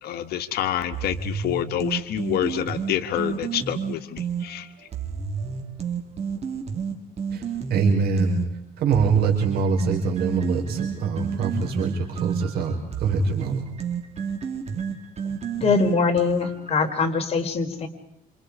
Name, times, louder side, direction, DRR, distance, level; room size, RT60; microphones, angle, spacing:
voice 1, 0.0-4.7, left 11 dB, 70° left, 7 dB, 1.7 m, -27 dB
sound 1, 0.9-4.5 4.9-8.5 8.9-16.7, right 6 dB, 40° right, 4.3 m, -30 dB
voice 2, 7.7-8.4 8.8-12.7 13.0-13.6, right 5 dB, 70° right, 1 dB, 5.3 m, -23 dB
voice 3, 15.6-17.9, left 4 dB, 35° left, 2 dB, 4.3 m, -22 dB
29.0 x 27.5 x 5.0 m, 0.74 s
cardioid pair, 110°, 17 cm